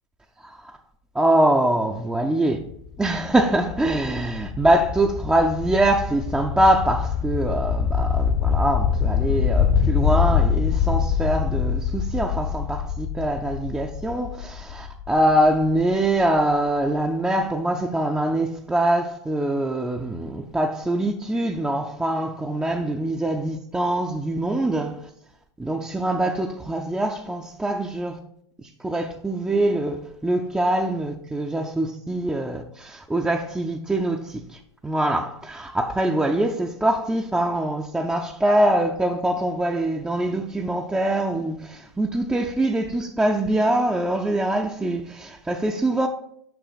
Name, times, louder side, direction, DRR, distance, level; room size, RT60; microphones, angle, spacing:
voice 1, 0.4-0.8 1.1-2.6 3.0-25.1 25.6-28.2 28.6-46.1, right 1 dB, 5° right, 0.4 m, -23 dB
sound 1, 2.5-16.3, left 7 dB, 35° left, 0.7 m, -25 dB
6.8 x 5.5 x 4.0 m
hypercardioid pair, 100°, 14 cm